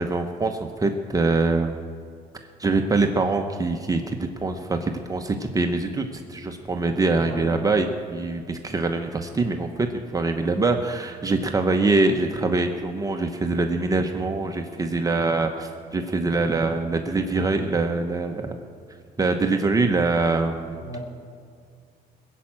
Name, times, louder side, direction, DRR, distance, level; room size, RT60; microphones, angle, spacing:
voice 1, 0.0-1.8 2.6-18.5 19.2-20.8, right 3 dB, 20° right, 4 dB, 1.0 m, -24 dB
voice 2, 7.2-7.5 20.8-21.0, equal, 35° left, 1 dB, 2.9 m, -35 dB
21.0 x 7.4 x 8.8 m, 2.2 s
cardioid pair, 110°, 17 cm